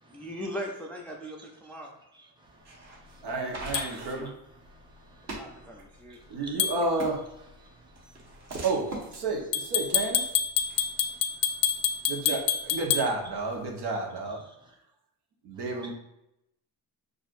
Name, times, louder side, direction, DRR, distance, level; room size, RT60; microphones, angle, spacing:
voice 1, 0.1-1.9 5.2-6.2 7.6-7.7 8.6-8.9, equal, 5° left, 0 dB, 0.4 m, -40 dB
voice 2, 2.2-2.6 3.7-4.1 4.6-5.7 6.1-6.6 7.6-8.6 10.6-12.4 14.4-14.7 15.6-15.9, right 2 dB, 10° right, -1 dB, 0.8 m, -54 dB
sound 1, 2.4-10.8, right 2 dB, 40° right, 1.1 m, -43 dB
voice 3, 3.2-4.3 6.3-7.2 8.6-10.2 12.1-14.4 15.4-15.9, right 3 dB, 75° right, 0 dB, 1.0 m, -31 dB
sound 2, 3.7-3.9 6.6-6.8 9.5-13.1, left 9 dB, 85° left, 0.6 m, -27 dB
6.2 x 2.5 x 2.5 m, 0.87 s
cardioid pair, 120°, 39 cm